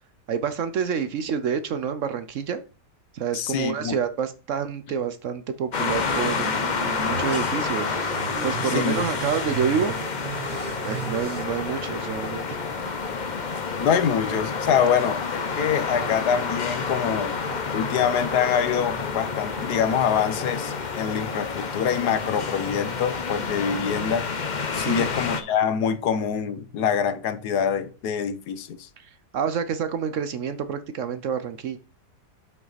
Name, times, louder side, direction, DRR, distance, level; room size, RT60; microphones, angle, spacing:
voice 1, 0.3-2.6 3.1-6.5 7.0-8.0 8.4-9.9 10.8-12.6 24.8-25.1 29.0-31.8, right 7 dB, 65° right, 0.8 m, -28 dB
voice 2, 3.3-4.0 8.6-9.1 13.8-17.4 17.7-24.3 24.7-28.8, left 7 dB, 70° left, 1.3 m, -25 dB
sound 1, 5.7-25.4, left 5 dB, 55° left, 0.5 m, -29 dB
sound 2, 6.0-11.4, right 6 dB, 85° right, 1.5 m, -36 dB
sound 3, 7.0-23.4, equal, 5° left, 1.9 m, -40 dB
7.0 x 6.0 x 4.0 m
omnidirectional pair, 1.9 m